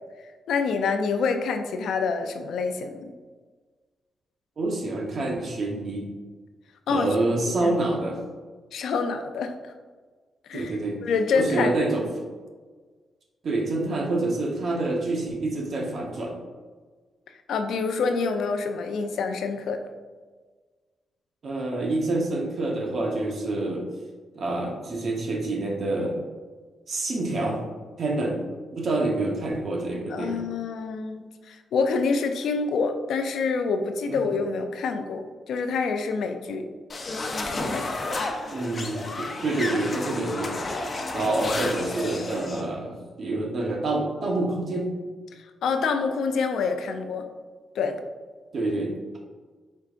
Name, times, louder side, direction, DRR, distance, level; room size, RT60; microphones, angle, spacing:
voice 1, 0.5-3.1 6.9-7.1 7.5-7.7 8.7-9.5 10.5-10.7 11.0-11.9 17.5-19.8 30.1-36.7 37.7-37.9 45.6-47.3 47.7-48.0, left 4 dB, 80° left, 6 dB, 0.4 m, -26 dB
voice 2, 4.6-6.1 6.9-8.2 10.5-11.0 11.3-12.2 13.4-16.3 21.4-23.8 24.3-26.2 26.9-27.6 28.0-28.5 28.7-30.4 34.1-34.3 38.5-40.5 41.1-44.9 48.5-49.2, right 2 dB, 60° right, 0 dB, 1.0 m, -27 dB
sound 1, 36.9-42.6, left 2 dB, 40° left, 0.7 m, -31 dB
4.6 x 4.5 x 2.5 m, 1.4 s
cardioid pair, 70°, 0 cm